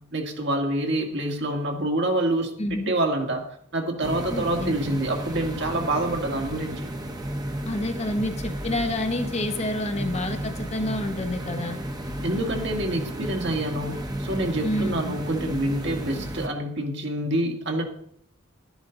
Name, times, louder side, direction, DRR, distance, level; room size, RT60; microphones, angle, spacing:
voice 1, 0.1-3.4 3.7-6.9 12.2-17.9, right 1 dB, 55° right, 2 dB, 2.0 m, -27 dB
voice 2, 2.6-2.9 4.3-4.8 7.6-11.8 14.6-15.2, left 1 dB, 30° left, 6 dB, 1.0 m, -28 dB
sound 1, 4.0-16.5, right 1 dB, 20° right, 1.1 m, -33 dB
12.0 x 10.5 x 4.0 m, 0.67 s
head